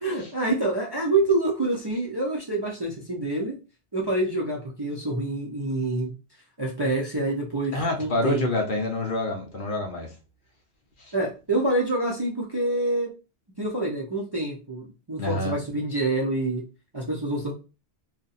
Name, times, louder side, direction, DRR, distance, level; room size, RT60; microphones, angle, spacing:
voice 1, 0.0-3.6 3.9-6.1 6.6-8.4 11.1-13.1 13.6-16.6 16.9-17.5, right 2 dB, 25° right, 0.6 m, -27 dB
voice 2, 7.7-10.1 11.0-11.1 15.2-15.6, left 2 dB, 50° left, 0.9 m, -27 dB
2.7 x 2.5 x 4.0 m
omnidirectional pair, 1.2 m